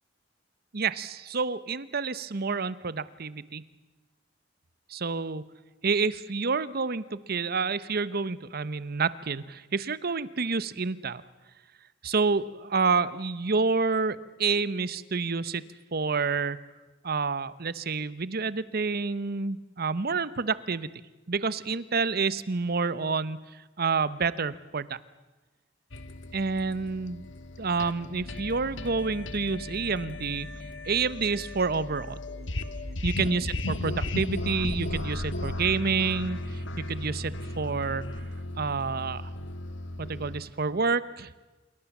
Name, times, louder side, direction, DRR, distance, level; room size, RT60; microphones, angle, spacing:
voice 1, 0.7-3.6 4.9-5.4 5.8-11.2 12.0-15.6 15.9-16.6 17.0-20.9 21.3-25.0 26.3-27.2 27.6-30.5 30.8-32.2 33.0-38.1 38.6-39.3 40.0-41.3, right 4 dB, 55° right, 17 dB, 0.9 m, -28 dB
sound 1, 25.9-40.4, left 1 dB, 80° left, 1.6 m, -35 dB
27.0 x 23.0 x 7.2 m, 1.2 s
head